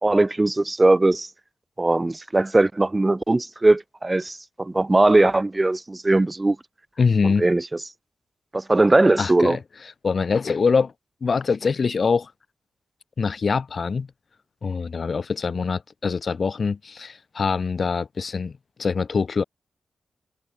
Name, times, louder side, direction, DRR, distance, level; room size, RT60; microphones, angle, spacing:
voice 1, 0.0-1.3 1.8-6.6 7.2-7.7 8.5-9.6, right 2 dB, 25° right, 0.4 m, -19 dB
voice 2, 7.0-7.5 9.2-9.6 10.0-10.9 11.2-12.3 13.2-14.1 14.6-18.5 18.8-19.4, left 5 dB, 60° left, 0.7 m, -23 dB
cardioid pair, 50°, 0 cm